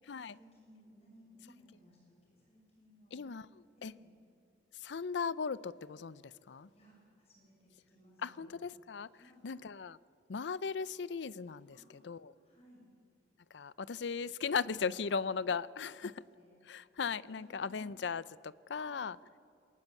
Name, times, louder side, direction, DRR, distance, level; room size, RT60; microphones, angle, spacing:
voice 1, 0.2-3.3 3.8-4.1 6.7-8.5 9.1-9.5 11.7-12.9 15.0-15.1 15.8-16.6 17.2-17.8 18.8-19.1, left 1 dB, 35° left, 6.4 m, -62 dB
voice 2, 3.1-3.5 3.8-3.9 4.8-6.7 8.2-9.1 9.4-10.0 10.3-11.8 12.0-12.3 13.5-16.1 16.7-19.2, left 5 dB, 85° left, 0.5 m, -37 dB
22.0 x 19.0 x 8.3 m
head